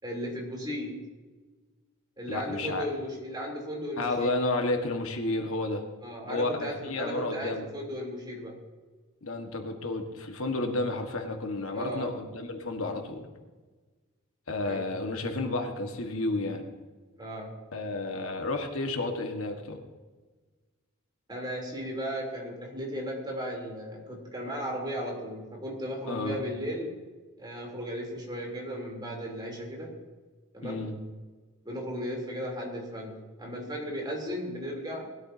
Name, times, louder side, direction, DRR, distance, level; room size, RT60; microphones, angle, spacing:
voice 1, 0.0-1.1 2.2-4.3 6.0-8.6 11.7-12.1 14.6-14.8 17.2-17.5 21.3-27.0 27.4-30.0 30.5-30.9 31.6-35.1, equal, 20° right, -2 dB, 3.3 m, -36 dB
voice 2, 2.3-2.9 4.0-5.8 6.3-7.6 9.2-13.3 14.5-16.6 17.7-19.8 26.1-26.4 30.6-30.9, left 2 dB, 70° left, 4 dB, 1.6 m, -31 dB
20.0 x 13.0 x 2.8 m, 1.3 s
head